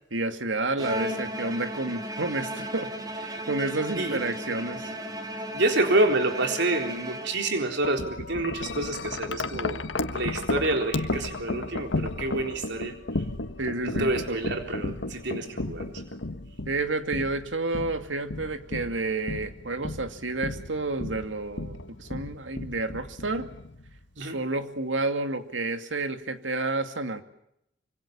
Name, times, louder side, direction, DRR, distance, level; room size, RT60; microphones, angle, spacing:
voice 1, 0.1-2.9 3.2-4.9 13.6-14.4 16.7-23.5 24.2-27.2, right 2 dB, 85° right, 8 dB, 2.5 m, -30 dB
Bowed string instrument, 0.8-7.7, equal, 20° right, 3.2 m, -35 dB
voice 2, 5.5-9.8 10.1-12.9 13.9-15.9 24.2-24.4, right 2 dB, 65° right, 5 dB, 3.9 m, -27 dB
Wind chime, 7.8-24.0, left 2 dB, 75° left, 1.6 m, -34 dB
25.5 x 25.5 x 7.1 m, 0.77 s
head